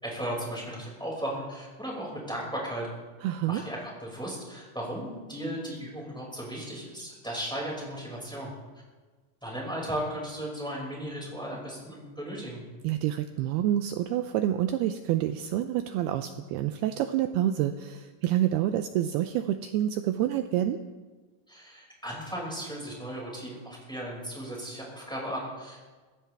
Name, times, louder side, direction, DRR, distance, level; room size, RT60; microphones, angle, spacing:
voice 1, 0.0-2.9 3.4-8.5 9.4-12.6 21.5-25.9, equal, ahead, -4 dB, 5.1 m, -36 dB
voice 2, 3.2-3.6 12.8-20.8, right 12 dB, 85° right, 8 dB, 2.3 m, -28 dB
24.0 x 15.5 x 3.5 m, 1.3 s
omnidirectional pair, 5.1 m